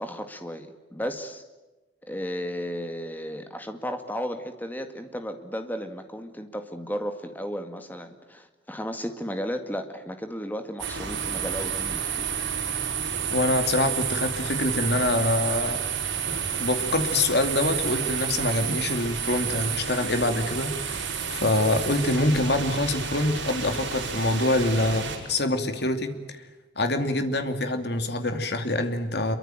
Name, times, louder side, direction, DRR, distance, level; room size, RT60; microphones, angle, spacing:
voice 1, 0.0-1.4 2.0-12.3, equal, 10° left, 7 dB, 2.0 m, -34 dB
sound 1, 10.8-25.2, right 7 dB, 75° right, 5.8 m, -30 dB
voice 2, 13.3-15.8 16.6-26.4 26.8-29.4, left 2 dB, 55° left, 7 dB, 2.6 m, -25 dB
27.0 x 23.5 x 9.0 m, 1.1 s
head